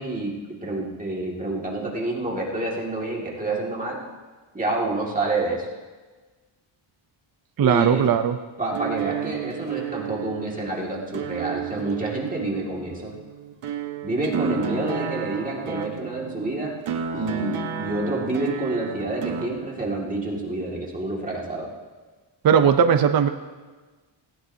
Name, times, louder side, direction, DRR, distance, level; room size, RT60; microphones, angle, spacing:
voice 1, 0.0-4.0 4.5-5.7 7.6-8.1 8.6-13.1 14.0-16.7 17.1-21.7, right 2 dB, 15° right, -3 dB, 2.1 m, -28 dB
voice 2, 7.6-8.4 22.4-23.3, right 7 dB, 45° right, 7 dB, 0.6 m, -18 dB
sound 1, 8.7-19.5, right 7 dB, 85° right, 1.2 m, -32 dB
18.0 x 16.0 x 2.8 m, 1.3 s
wide cardioid pair, 170°, 49 cm